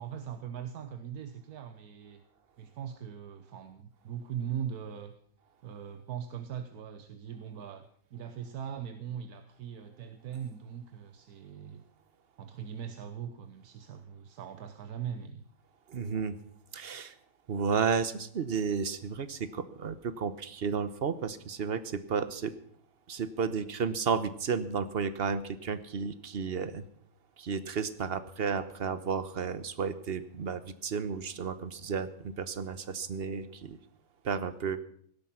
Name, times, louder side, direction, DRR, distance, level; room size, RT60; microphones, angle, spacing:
voice 1, 0.0-2.2 2.6-5.1 5.6-7.9 8.1-11.8 12.4-15.4, right 8 dB, 80° right, 9 dB, 1.5 m, -40 dB
voice 2, 15.9-16.4 16.7-17.1 17.5-22.5 23.1-26.8 27.4-33.8 34.2-34.8, right 6 dB, 45° right, 13 dB, 1.0 m, -32 dB
17.5 x 12.5 x 5.8 m, 0.63 s
omnidirectional pair, 1.6 m